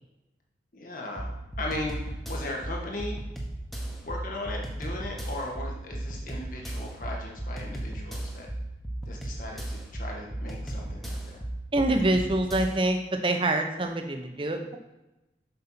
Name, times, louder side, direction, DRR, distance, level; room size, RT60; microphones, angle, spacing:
voice 1, 0.7-3.2 3.9-8.5 9.1-11.4, left 2 dB, 45° left, -1 dB, 1.7 m, -37 dB
sound 1, 1.2-12.9, right 1 dB, ahead, 1.1 m, -36 dB
voice 2, 11.7-13.0 13.2-14.8, right 2 dB, 30° right, 5 dB, 0.8 m, -25 dB
7.8 x 5.6 x 5.8 m, 0.98 s
head